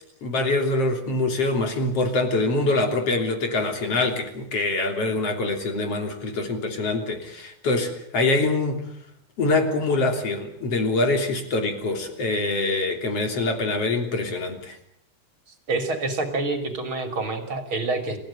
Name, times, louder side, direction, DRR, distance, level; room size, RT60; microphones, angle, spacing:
voice 1, 0.2-8.9 9.4-14.8, left 2 dB, 50° left, 4 dB, 4.2 m, -24 dB
voice 2, 15.7-18.2, right 3 dB, 40° right, 5 dB, 3.9 m, -27 dB
29.5 x 15.5 x 8.9 m, 0.73 s
omnidirectional pair, 3.6 m